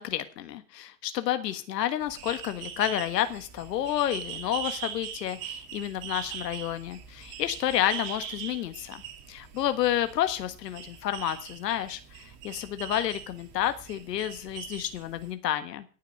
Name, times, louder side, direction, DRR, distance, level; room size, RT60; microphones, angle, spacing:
voice 1, 0.0-9.0 9.3-15.8, left 12 dB, 80° left, 10 dB, 1.6 m, -30 dB
sound 1, 2.0-15.3, right 9 dB, 40° right, 2.3 m, -41 dB
18.0 x 6.6 x 6.6 m, 0.37 s
supercardioid pair, 145°, 48 cm